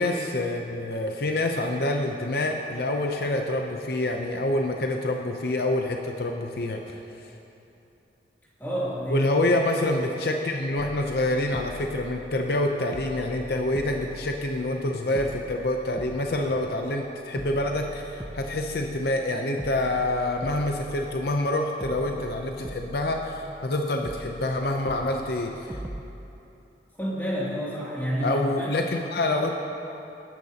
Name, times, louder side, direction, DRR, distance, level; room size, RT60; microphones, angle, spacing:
voice 1, 0.0-7.0 9.1-25.8 28.2-29.5, left 1 dB, 60° left, 3 dB, 0.6 m, -27 dB
voice 2, 8.6-9.3 27.0-28.7, equal, 10° left, -8 dB, 2.6 m, -29 dB
sound 1, 10.8-12.6 12.9-14.8 15.1-17.0 17.4-19.3 19.6-21.5 21.8-23.7 24.0-26.0, right 1 dB, 15° right, 0.5 m, -42 dB
19.0 x 10.5 x 2.9 m, 2.9 s
head